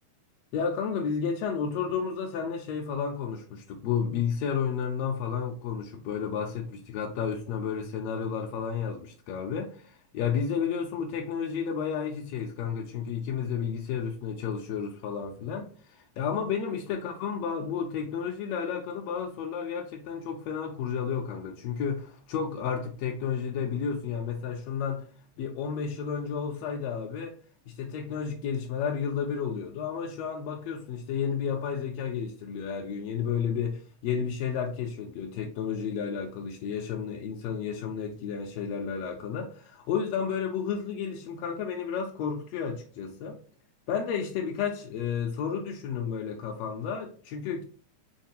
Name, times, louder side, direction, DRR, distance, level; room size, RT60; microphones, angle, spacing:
voice 1, 0.5-25.1 25.4-27.4 27.7-43.4 43.9-47.6, left 7 dB, 80° left, 1.6 m, -32 dB
4.5 x 3.3 x 2.8 m
omnidirectional pair, 3.4 m